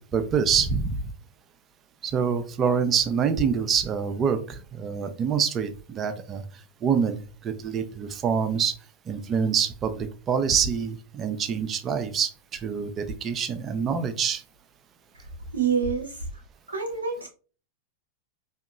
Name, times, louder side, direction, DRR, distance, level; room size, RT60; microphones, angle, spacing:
voice 1, 0.1-1.0 2.0-6.4 6.8-8.7 9.1-14.4, right 6 dB, 25° right, 9 dB, 0.5 m, -26 dB
voice 2, 15.5-16.3 16.7-17.3, right 6 dB, 75° right, 3 dB, 0.6 m, -27 dB
4.5 x 2.9 x 2.3 m, 0.38 s
figure-of-eight pair, 90°, 0 cm